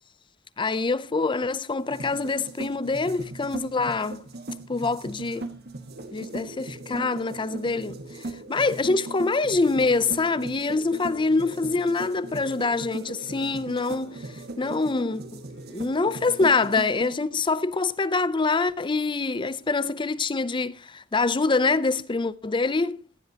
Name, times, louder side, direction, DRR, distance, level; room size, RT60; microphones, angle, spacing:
voice 1, 0.6-4.2 4.7-5.5 6.1-14.3 14.6-15.4 15.7-23.0, left 3 dB, 25° left, 0.5 m, -25 dB
sound 1, 1.8-17.1, right 2 dB, 55° right, 1.4 m, -39 dB
sound 2, 5.9-16.5, right 1 dB, 70° right, 3.1 m, -46 dB
15.5 x 11.0 x 2.9 m
head